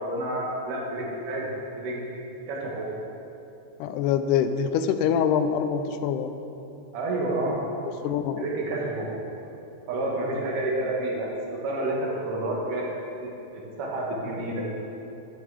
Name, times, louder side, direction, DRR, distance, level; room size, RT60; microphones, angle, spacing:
voice 1, 0.0-1.5 1.8-2.2 2.5-2.9 6.9-7.7 8.4-9.1 9.9-12.9 13.2-14.6, right 1 dB, 85° right, -2 dB, 3.3 m, -29 dB
voice 2, 3.8-6.3 8.0-8.4, left 8 dB, 90° left, 9 dB, 2.1 m, -24 dB
12.0 x 9.2 x 4.9 m, 2.9 s
omnidirectional pair, 3.6 m